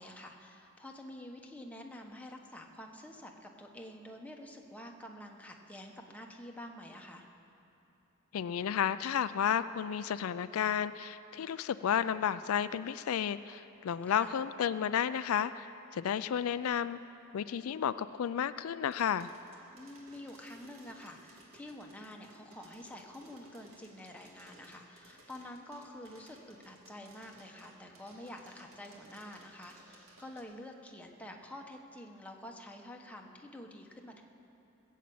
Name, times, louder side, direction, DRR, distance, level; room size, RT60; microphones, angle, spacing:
voice 1, 0.0-7.2 14.1-14.3 19.7-34.2, left 1 dB, 5° left, 1 dB, 1.1 m, -48 dB
voice 2, 8.3-17.0 17.3-19.3, left 8 dB, 80° left, 13 dB, 0.4 m, -32 dB
sound 1, 18.9-30.4, right 2 dB, 70° right, 2.1 m, -59 dB
19.5 x 7.4 x 8.5 m, 2.8 s
head